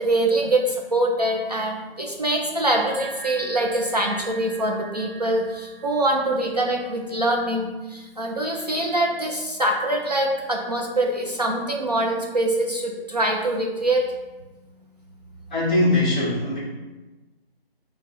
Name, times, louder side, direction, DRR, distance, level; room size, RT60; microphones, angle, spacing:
voice 1, 0.0-14.0, right 1 dB, 40° right, 0 dB, 0.4 m, -24 dB
sound 1, 2.7-7.7, right 4 dB, 10° right, 1.0 m, -42 dB
voice 2, 15.5-16.6, left 2 dB, 10° left, -9 dB, 0.5 m, -21 dB
5.4 x 2.1 x 4.0 m, 1.2 s
figure-of-eight pair, 155°, 31 cm